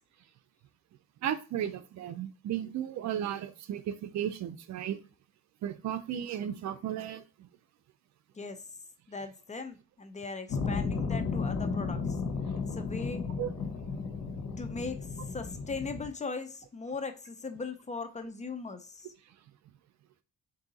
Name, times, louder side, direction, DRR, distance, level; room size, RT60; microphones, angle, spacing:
voice 1, 1.2-5.0 5.6-7.5 13.4-13.5, right 10 dB, 65° right, 0.5 m, -35 dB
voice 2, 9.1-12.2 12.7-13.2 14.6-19.1, left 4 dB, 25° left, 0.6 m, -39 dB
sound 1, 10.5-16.1, left 4 dB, 75° left, 1.0 m, -34 dB
3.6 x 2.7 x 4.0 m
cardioid pair, 90°, 30 cm